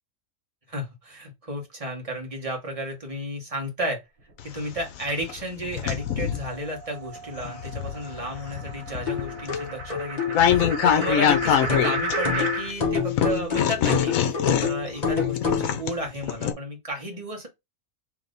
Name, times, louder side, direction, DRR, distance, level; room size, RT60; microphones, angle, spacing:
voice 1, 0.7-4.0 4.4-17.5, right 1 dB, 25° right, 1.4 m, -33 dB
sound 1, 4.4-6.6 7.2-12.7 13.2-16.5, left 9 dB, 80° left, 1.1 m, -25 dB
sound 2, 6.0-12.7, right 2 dB, 75° right, 1.5 m, -33 dB
sound 3, 9.1-15.7, left 6 dB, 30° left, 1.0 m, -28 dB
3.5 x 3.1 x 3.9 m
omnidirectional pair, 1.4 m